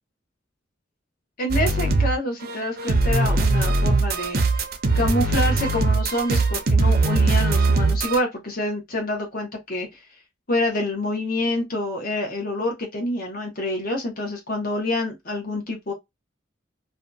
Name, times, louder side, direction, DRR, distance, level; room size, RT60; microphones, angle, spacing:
voice 1, 1.4-4.4 5.0-9.9 10.5-15.9, left 1 dB, 45° left, 0.9 m, -27 dB
sound 1, 1.5-2.2 2.4-8.2, right 3 dB, 50° right, 0.5 m, -20 dB
2.7 x 2.3 x 2.5 m
head